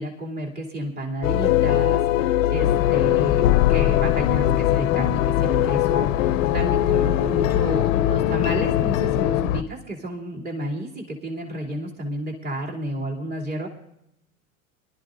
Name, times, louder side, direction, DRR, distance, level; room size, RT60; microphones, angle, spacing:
voice 1, 0.0-13.7, right 1 dB, 20° right, -2 dB, 2.9 m, -31 dB
sound 1, 1.2-9.4, left 13 dB, 70° left, 0.6 m, -22 dB
sound 2, 2.6-9.6, left 11 dB, 45° left, 0.9 m, -25 dB
24.0 x 12.5 x 2.6 m, 0.81 s
hypercardioid pair, 90°, 41 cm